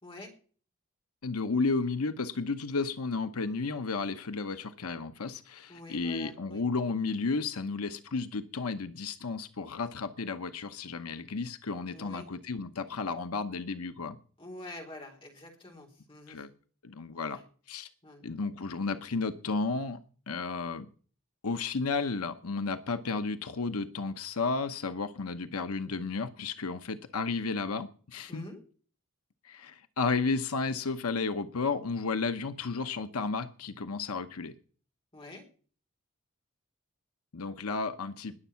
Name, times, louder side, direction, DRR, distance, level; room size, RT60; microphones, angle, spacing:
voice 1, 1.2-14.2 16.3-16.5 16.8-17.4 17.7-17.9 18.2-20.0 20.3-20.9 21.4-28.4 29.4-34.5 37.3-38.3, left 4 dB, 85° left, 9 dB, 0.9 m, -33 dB
voice 2, 5.7-6.6 11.9-12.3 14.4-16.4 17.1-17.4 18.0-18.3 28.3-28.6 35.1-35.4, left 1 dB, 25° left, 2 dB, 3.9 m, -47 dB
20.0 x 7.2 x 5.7 m, 0.42 s
head